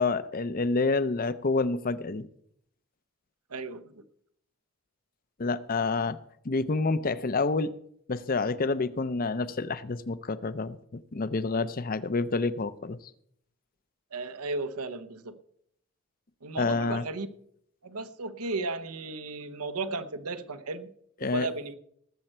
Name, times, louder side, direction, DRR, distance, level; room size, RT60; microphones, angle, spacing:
voice 1, 0.0-2.3 5.4-6.2 6.4-7.7 8.1-10.8 11.1-13.0 16.6-17.0 21.2-21.5, left 3 dB, 40° left, 15 dB, 0.6 m, -28 dB
voice 2, 3.5-4.0 14.1-15.3 16.4-17.3 17.8-20.9 21.2-21.7, right 3 dB, 90° right, 12 dB, 1.0 m, -35 dB
19.0 x 7.7 x 4.4 m, 0.69 s
head